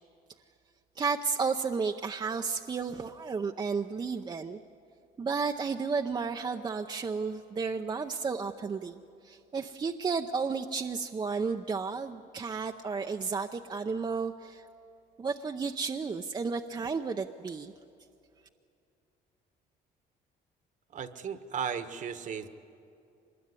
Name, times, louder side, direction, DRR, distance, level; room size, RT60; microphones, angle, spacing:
voice 1, 1.0-4.6 5.2-9.0 9.2-14.7 15.2-17.7, right 5 dB, 25° right, 5 dB, 0.6 m, -32 dB
voice 2, 20.9-22.5, right 7 dB, 50° right, 10 dB, 1.3 m, -35 dB
24.5 x 20.5 x 9.7 m, 2.6 s
cardioid pair, 110°, 17 cm